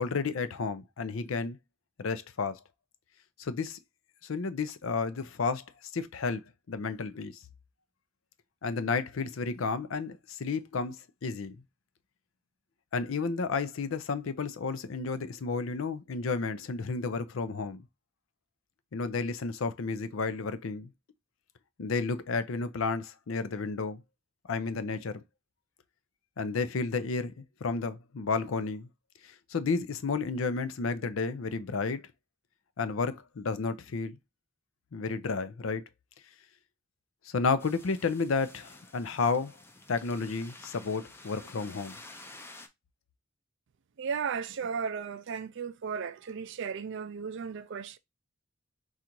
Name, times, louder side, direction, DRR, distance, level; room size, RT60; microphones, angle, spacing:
voice 1, 0.0-1.6 2.0-2.6 3.4-3.8 4.2-5.6 5.9-6.4 6.7-7.4 8.6-11.0 11.2-11.6 12.9-17.8 18.9-20.9 21.8-24.0 24.5-25.2 26.4-28.9 29.2-32.0 32.8-34.2 34.9-35.8 37.3-39.6 39.9-42.0, left 4 dB, 75° left, 0.5 m, -32 dB
sound 1, 37.6-42.7, left 2 dB, 10° left, 0.5 m, -51 dB
voice 2, 44.0-48.0, right 6 dB, 65° right, 0.4 m, -35 dB
3.9 x 2.5 x 4.4 m
head